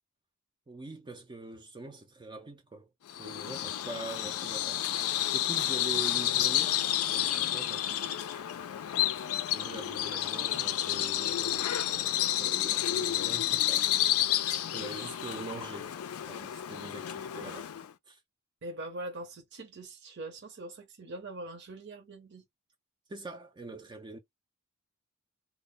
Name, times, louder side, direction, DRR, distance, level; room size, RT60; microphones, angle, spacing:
voice 1, 0.7-2.9 3.2-6.8 7.1-8.1 9.5-14.0 14.3-15.9 16.2-17.7 18.1-18.2 23.1-24.2, right 2 dB, 20° right, 0.4 m, -44 dB
Bird vocalization bird call bird song, 3.1-17.9, left 12 dB, 80° left, 0.4 m, -30 dB
voice 2, 10.1-10.6 17.3-17.6 18.6-22.4, right 1 dB, 55° right, 0.8 m, -43 dB
2.1 x 2.0 x 3.6 m
head